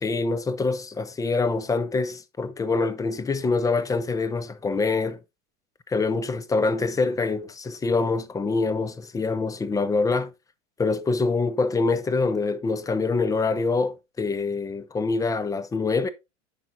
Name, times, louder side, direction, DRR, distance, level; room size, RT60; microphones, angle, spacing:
voice 1, 0.0-5.2 5.9-10.3 10.8-16.1, left 3 dB, 10° left, 0.4 m, -25 dB
10.5 x 4.5 x 2.6 m
hypercardioid pair, 100°, 38 cm